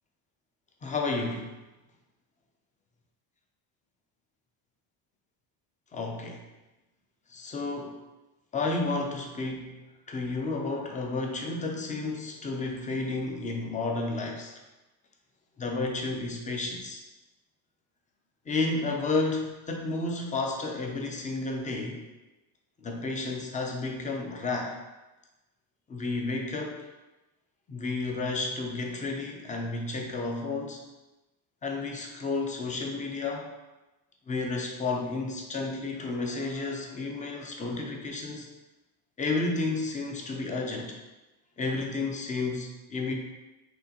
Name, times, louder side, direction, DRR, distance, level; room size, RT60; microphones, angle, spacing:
voice 1, 0.8-1.5 5.9-6.4 7.3-7.9 8.5-9.7 10.1-14.5 15.6-17.0 18.5-22.0 22.8-24.8 25.9-26.8 27.7-30.8 31.6-33.5 34.3-38.5 39.2-41.0 41.6-43.1, left 3 dB, 15° left, 2 dB, 0.5 m, -31 dB
6.3 x 2.9 x 2.9 m, 1.1 s
cardioid pair, 140°, 48 cm